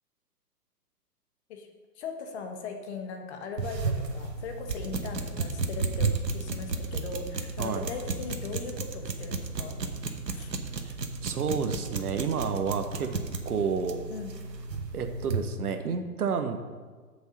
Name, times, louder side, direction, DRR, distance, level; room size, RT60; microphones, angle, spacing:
voice 1, 2.0-9.8 10.3-10.5 14.1-14.3, left 5 dB, 40° left, 4 dB, 1.4 m, -39 dB
sound 1, 3.6-15.5, right 4 dB, 85° right, 1.2 m, -33 dB
voice 2, 11.2-13.1 13.4-14.0 14.9-16.6, right 6 dB, 65° right, 7 dB, 1.2 m, -30 dB
8.1 x 6.5 x 6.4 m, 1.5 s
figure-of-eight pair, 125°, 49 cm